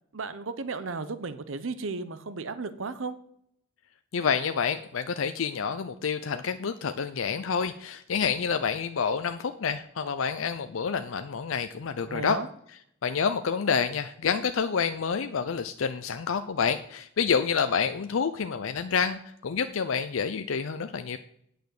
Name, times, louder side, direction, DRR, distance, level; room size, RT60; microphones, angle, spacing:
voice 1, 0.1-3.2 12.1-12.5, right 4 dB, 70° right, 12 dB, 0.7 m, -34 dB
voice 2, 4.1-12.4 13.0-21.2, left 6 dB, 75° left, 9 dB, 0.5 m, -28 dB
9.0 x 5.1 x 7.8 m, 0.72 s
head